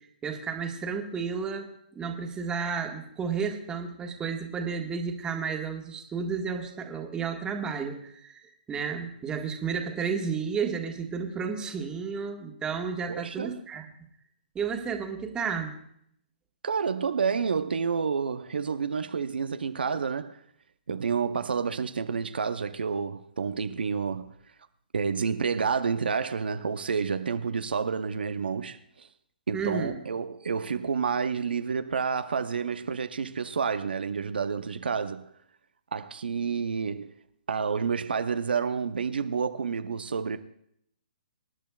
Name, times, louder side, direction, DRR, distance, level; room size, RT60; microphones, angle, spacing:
voice 1, 0.2-13.9 14.5-15.7 29.5-29.9, right 6 dB, 15° right, 1.5 m, -32 dB
voice 2, 13.1-13.5 16.6-20.4 20.9-24.3 24.9-29.1 29.5-35.3 35.9-37.1 37.5-40.4, right 5 dB, 80° right, 0.7 m, -29 dB
25.5 x 10.0 x 2.4 m
hypercardioid pair, 135°, 5 cm